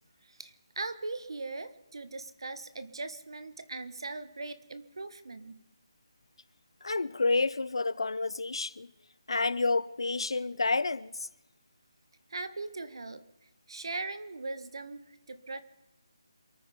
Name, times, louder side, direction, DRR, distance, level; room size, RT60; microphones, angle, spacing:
voice 1, 0.2-5.5 12.3-13.2 13.7-15.6, right 3 dB, 65° right, 1.6 m, -40 dB
voice 2, 6.8-8.9 9.3-11.3, left 3 dB, 75° left, 0.7 m, -29 dB
28.0 x 9.5 x 5.4 m
figure-of-eight pair, 170°, 3 cm